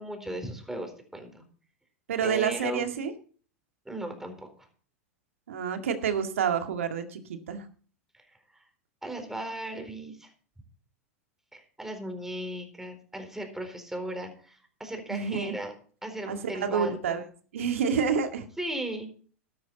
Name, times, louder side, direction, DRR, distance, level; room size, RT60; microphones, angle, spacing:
voice 1, 0.0-1.4 2.2-3.0 3.9-4.5 8.3-8.6 9.0-10.3 11.5-15.7 16.0-17.2 18.6-19.1, right 1 dB, 5° right, 5 dB, 4.2 m, -37 dB
voice 2, 2.1-3.1 5.5-7.7 15.1-15.6 16.3-17.2 17.5-18.5, right 7 dB, 75° right, 6 dB, 2.1 m, -28 dB
12.5 x 11.5 x 4.1 m, 0.43 s
hypercardioid pair, 100°, 7 cm